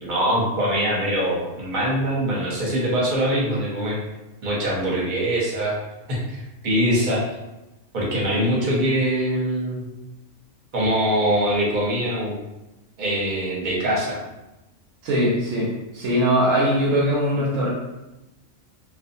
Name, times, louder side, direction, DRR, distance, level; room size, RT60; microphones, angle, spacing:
voice 1, 0.0-4.0 4.4-5.8 6.1-7.3 7.9-9.9 10.7-12.4 13.0-14.2, equal, 45° right, -4 dB, 0.8 m, -23 dB
voice 2, 15.0-17.7, equal, 90° right, -5 dB, 1.0 m, -21 dB
2.6 x 2.3 x 2.6 m, 0.98 s
omnidirectional pair, 1.3 m